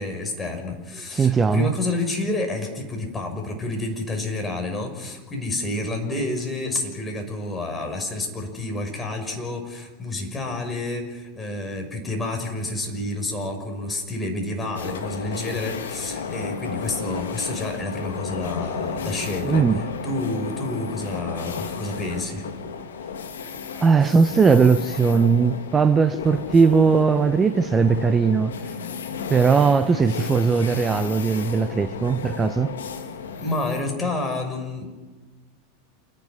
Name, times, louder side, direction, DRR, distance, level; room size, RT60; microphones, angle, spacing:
voice 1, 0.0-19.6 20.0-22.4 33.4-34.9, left 2 dB, 20° left, 6.1 m, -29 dB
voice 2, 1.1-1.7 19.4-19.8 23.8-28.5 29.3-32.7, right 5 dB, 20° right, 0.9 m, -19 dB
sound 1, 14.7-33.8, left 6 dB, 75° left, 1.9 m, -33 dB
28.5 x 10.5 x 9.9 m
hypercardioid pair, 90°, 0 cm